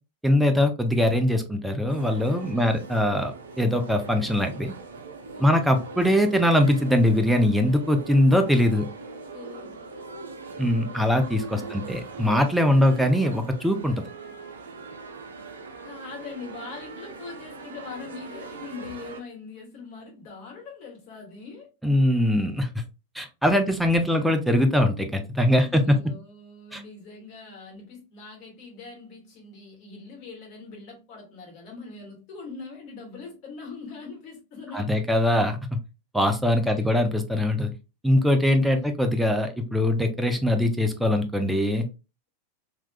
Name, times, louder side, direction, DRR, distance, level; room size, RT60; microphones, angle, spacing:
voice 1, 0.2-4.7 5.4-8.9 10.6-14.1 21.8-22.8 23.1-26.0 26.7-26.8 34.7-35.8 36.1-37.7 38.0-41.9, left 1 dB, 5° right, 0.6 m, -22 dB
sound 1, 1.9-19.2, right 4 dB, 65° right, 0.6 m, -41 dB
voice 2, 2.5-2.9 5.3-5.7 9.3-9.9 11.5-11.9 12.7-12.9 15.8-21.7 25.4-34.9 36.7-36.9 38.5-38.9, left 4 dB, 40° left, 1.8 m, -42 dB
3.5 x 3.0 x 2.3 m
figure-of-eight pair, 90°, 0 cm